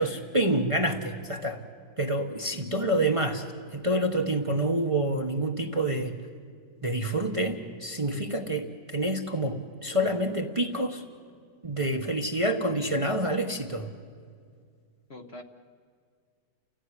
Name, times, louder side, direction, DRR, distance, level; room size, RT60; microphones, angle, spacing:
voice 1, 0.0-1.6 2.0-3.4 3.7-6.2 6.8-11.0 11.6-13.9, right 1 dB, 25° right, 3 dB, 1.0 m, -27 dB
voice 2, 15.1-15.4, left 2 dB, 45° left, 4 dB, 1.2 m, -43 dB
30.0 x 15.5 x 9.8 m, 2.1 s
omnidirectional pair, 1.7 m